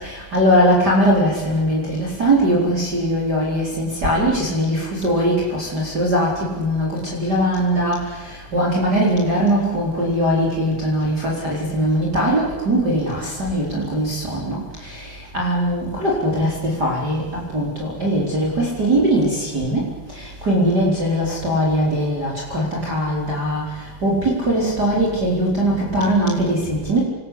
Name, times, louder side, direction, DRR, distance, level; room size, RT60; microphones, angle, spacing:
voice 1, 0.0-6.3 6.6-8.0 8.5-14.6 15.3-17.2 17.5-19.8 20.4-23.6 24.0-27.0, equal, 25° right, -3 dB, 4.8 m, -20 dB
28.5 x 20.5 x 8.6 m, 1.2 s
omnidirectional pair, 4.6 m